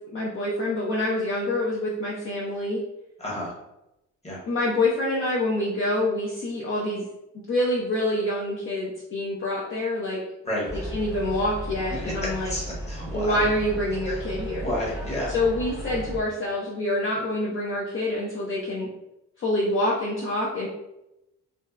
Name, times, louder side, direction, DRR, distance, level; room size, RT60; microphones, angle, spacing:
voice 1, 0.1-2.8 4.5-7.1 7.3-10.2 10.9-12.5 13.1-14.7 15.3-18.9 19.4-20.7, left 1 dB, 45° left, -5 dB, 0.6 m, -26 dB
voice 2, 3.2-3.5 4.2-4.4 10.4-10.7 12.5-13.4 14.1-14.2 14.6-15.3, left 1 dB, 20° left, -4 dB, 1.0 m, -30 dB
sound 1, 10.6-16.2, right 1 dB, 5° right, 0.7 m, -35 dB
2.7 x 2.0 x 2.3 m, 0.89 s
cardioid pair, 90°, 30 cm